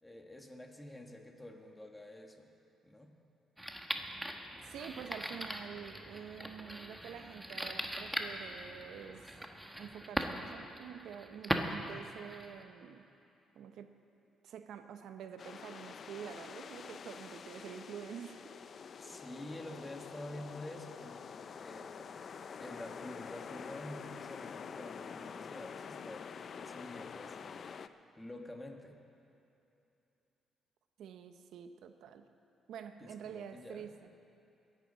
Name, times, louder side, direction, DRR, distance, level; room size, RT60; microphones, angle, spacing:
voice 1, 0.0-2.5 2.8-3.2 19.0-21.9 22.6-27.8 28.2-29.0 33.0-33.9, left 1 dB, 10° left, 3 dB, 1.6 m, -48 dB
sound 1, 3.6-12.6, equal, 5° right, 1.1 m, -40 dB
voice 2, 4.6-9.2 9.7-13.1 13.5-13.9 14.4-18.6 31.0-32.3 32.7-34.0, right 8 dB, 75° right, 8 dB, 0.8 m, -47 dB
sound 2, 15.4-27.9, left 6 dB, 50° left, 0.4 m, -47 dB
21.5 x 11.0 x 4.0 m, 2.8 s
cardioid pair, 90°, 0 cm